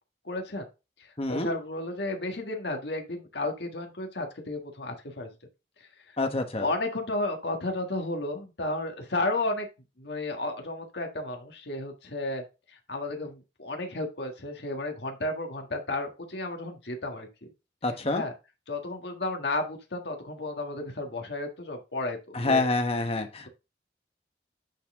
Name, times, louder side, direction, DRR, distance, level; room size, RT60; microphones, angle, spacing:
voice 1, 0.2-0.7 1.0-5.3 5.8-6.2 6.6-9.7 10.0-17.3 18.1-18.3 18.7-22.6, left 2 dB, 75° left, 1.6 m, -33 dB
voice 2, 1.2-1.5 6.2-6.7 17.8-18.2 22.3-23.5, left 2 dB, 35° left, 1.1 m, -27 dB
9.2 x 4.1 x 3.6 m
head